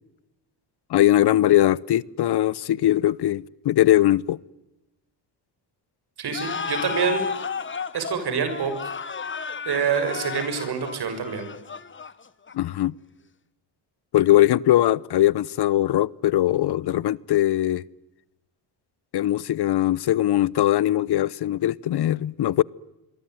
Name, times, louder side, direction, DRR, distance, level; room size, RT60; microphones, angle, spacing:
voice 1, 0.9-4.4 12.5-12.9 14.1-17.8 19.1-22.6, left 13 dB, 60° left, 0.9 m, -20 dB
voice 2, 6.2-7.3 7.9-8.7 9.6-11.5, right 6 dB, 60° right, 6.7 m, -26 dB
sound 1, 6.3-12.8, left 5 dB, 25° left, 1.3 m, -33 dB
27.5 x 22.5 x 9.3 m
cardioid pair, 110°, 44 cm